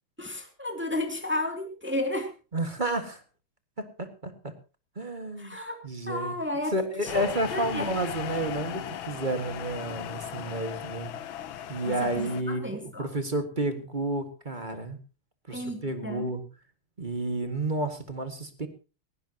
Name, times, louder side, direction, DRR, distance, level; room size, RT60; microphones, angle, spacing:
voice 1, 0.2-2.3 5.4-5.8 6.1-6.7 7.1-7.2 7.5-7.9 11.9-13.1 15.5-16.3, left 1 dB, 5° right, 4 dB, 2.4 m, -32 dB
voice 2, 2.5-3.2 3.8-4.5 5.0-5.6 5.8-6.3 6.7-11.1 11.7-15.0 15.5-16.4 17.0-18.7, right 1 dB, 25° right, 7 dB, 1.7 m, -31 dB
sound 1, 7.1-12.4, left 10 dB, 70° left, 1.6 m, -37 dB
19.0 x 17.0 x 2.9 m, 0.33 s
omnidirectional pair, 2.4 m